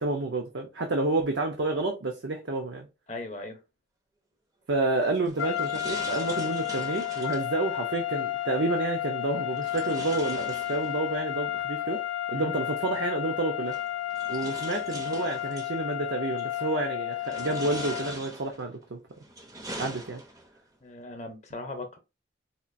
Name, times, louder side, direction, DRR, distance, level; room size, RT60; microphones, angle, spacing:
voice 1, 0.0-2.9 4.7-12.0 12.3-13.8 14.3-19.0 19.8-20.2, right 2 dB, 70° right, 0.6 m, -29 dB
voice 2, 3.1-3.6 12.3-12.5 20.8-22.0, left 2 dB, 35° left, 0.7 m, -38 dB
metal shutter, 5.0-7.6 9.6-11.2 12.6-12.7 13.7-15.7 16.4-16.8 17.2-18.7 19.2-20.6, right 2 dB, 20° right, 0.5 m, -42 dB
sound 1, 5.4-18.2, left 13 dB, 90° left, 0.3 m, -32 dB
4.3 x 2.5 x 2.5 m
head